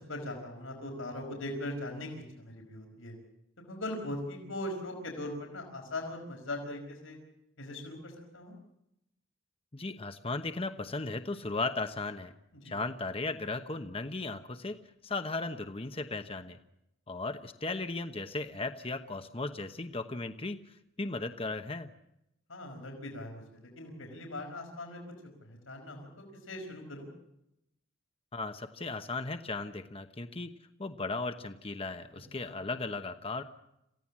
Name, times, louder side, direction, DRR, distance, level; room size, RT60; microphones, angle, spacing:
voice 1, 0.1-3.1 3.7-7.2 7.6-8.5 12.6-12.7 22.5-25.0 25.4-27.1 32.4-32.5, left 1 dB, 85° left, 3 dB, 5.1 m, -40 dB
voice 2, 9.7-12.3 12.6-14.8 15.0-16.6 17.1-20.6 21.0-21.9 28.3-30.5 30.8-33.4, left 3 dB, 30° left, 8 dB, 1.0 m, -36 dB
27.5 x 16.0 x 7.4 m, 0.84 s
head